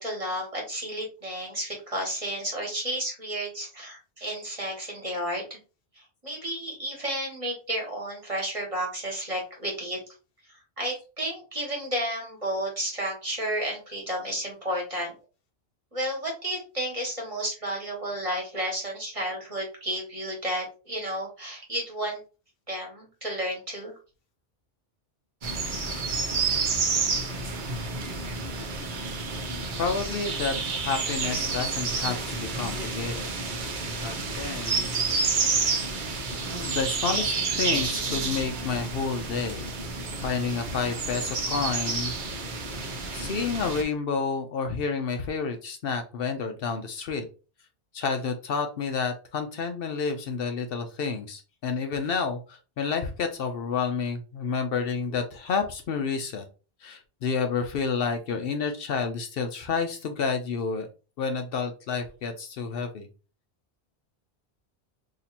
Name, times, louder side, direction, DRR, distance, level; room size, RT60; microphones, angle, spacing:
voice 1, 0.0-5.6 5.9-10.0 10.5-15.1 15.9-22.2 22.7-23.9, right 1 dB, 30° right, -2 dB, 1.5 m, -32 dB
sound 1, 25.4-43.8, right 4 dB, 50° right, 0.8 m, -29 dB
voice 2, 29.8-33.3 34.0-34.9 36.6-39.7 40.2-42.2 43.1-47.3 47.9-56.4 56.8-60.9 61.2-63.1, left 5 dB, 70° left, 6 dB, 0.7 m, -30 dB
2.9 x 2.7 x 4.1 m, 0.33 s
omnidirectional pair, 1.1 m